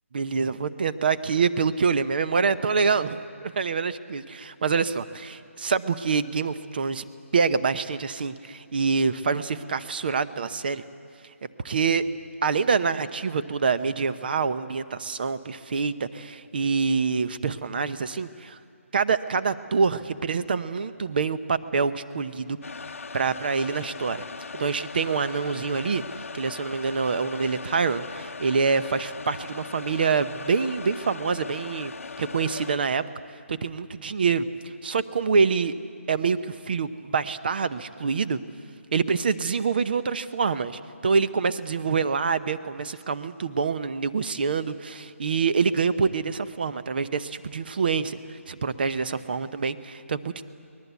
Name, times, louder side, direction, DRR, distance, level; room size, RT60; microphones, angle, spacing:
voice 1, 0.1-7.0 7.3-10.8 11.6-12.0 12.4-18.6 18.9-22.6 23.1-24.2 24.5-26.0 26.3-33.0 33.5-34.4 34.8-35.7 36.1-38.4 38.9-50.4, right 5 dB, 40° right, 13 dB, 0.8 m, -26 dB
sound 1, 22.6-32.8, left 4 dB, 65° left, 0.8 m, -39 dB
24.0 x 20.0 x 8.3 m, 2.4 s
hypercardioid pair, 170°, 8 cm